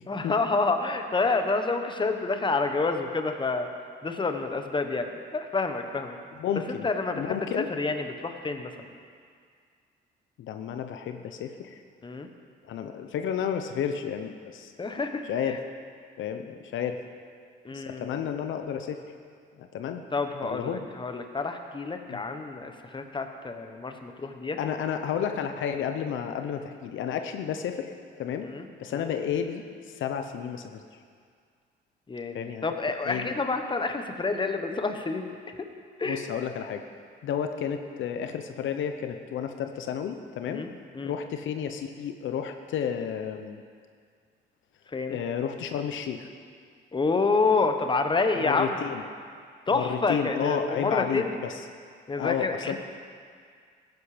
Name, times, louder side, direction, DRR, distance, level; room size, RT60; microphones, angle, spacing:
voice 1, 0.1-3.7 4.0-6.2 6.8-8.9 12.0-12.3 14.8-15.6 17.6-18.2 20.1-24.6 28.4-29.1 32.1-35.7 36.0-36.2 40.5-40.7 40.9-41.1 44.9-45.2 46.9-48.9 49.7-51.3 52.1-52.8, left 3 dB, 25° left, 6 dB, 1.2 m, -28 dB
voice 2, 6.4-6.9 7.1-7.7 10.4-11.8 12.6-14.7 15.2-15.6 16.2-17.0 17.7-19.0 19.6-20.0 20.4-20.8 22.1-22.2 24.6-28.5 28.8-31.0 32.3-32.6 33.0-33.3 36.1-36.8 37.2-40.6 41.0-43.6 45.1-46.3 48.4-49.0 49.7-51.6 52.1-52.7, left 8 dB, 75° left, 7 dB, 0.8 m, -31 dB
15.0 x 11.0 x 5.1 m, 2.1 s
cardioid pair, 90°, 20 cm